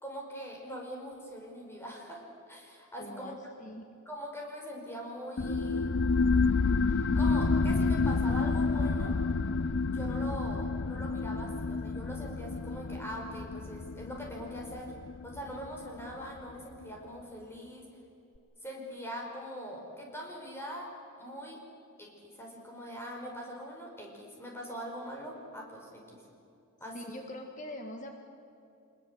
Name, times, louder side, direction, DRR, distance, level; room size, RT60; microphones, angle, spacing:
voice 1, 0.0-3.4 4.1-5.9 6.9-9.2 9.9-14.9 15.2-17.9 18.6-20.9 21.2-21.6 22.0-26.2 26.8-27.2, equal, 10° left, -1 dB, 5.3 m, -42 dB
voice 2, 3.0-3.9 26.9-28.2, left 1 dB, 35° left, 4 dB, 1.7 m, -43 dB
sound 1, 5.4-16.5, left 4 dB, 60° left, 0.6 m, -29 dB
25.0 x 21.0 x 8.3 m, 2.6 s
head